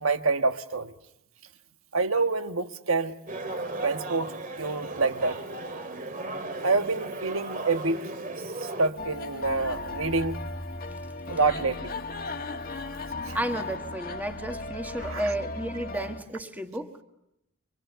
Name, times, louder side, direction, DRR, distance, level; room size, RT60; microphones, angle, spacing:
voice 1, 0.0-0.9 1.9-3.1 3.8-4.3 4.6-5.4 6.6-8.0 8.8-10.4 11.3-11.9 13.3-13.4 15.0-15.2, right 3 dB, 70° right, 9 dB, 1.4 m, -26 dB
sound 1, 3.3-8.9, right 2 dB, 40° right, 2.4 m, -36 dB
sound 2, 9.0-16.2, left 2 dB, 40° left, 1.7 m, -36 dB
voice 2, 13.3-16.9, right 1 dB, 10° right, 5 dB, 1.7 m, -32 dB
30.0 x 25.5 x 6.9 m, 0.83 s
head